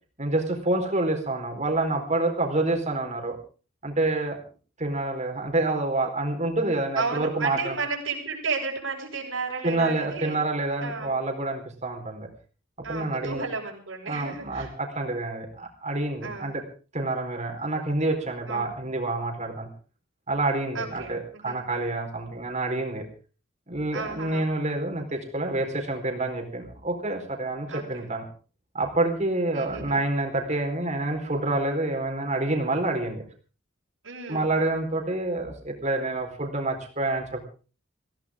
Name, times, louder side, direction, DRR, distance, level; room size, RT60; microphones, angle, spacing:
voice 1, 0.2-3.4 3.8-4.4 4.8-7.8 9.6-12.3 12.9-13.4 14.1-16.6 16.9-19.7 20.3-23.0 23.7-28.2 28.7-33.2 34.3-37.4, right 2 dB, 35° right, 3 dB, 4.2 m, -27 dB
voice 2, 7.0-10.4 10.8-11.1 12.8-14.7 16.2-16.6 18.5-18.7 20.7-21.6 23.9-24.4 27.7-28.0 29.5-30.0 34.0-34.5, right 4 dB, 75° right, -3 dB, 6.1 m, -33 dB
23.5 x 16.5 x 3.7 m, 0.38 s
head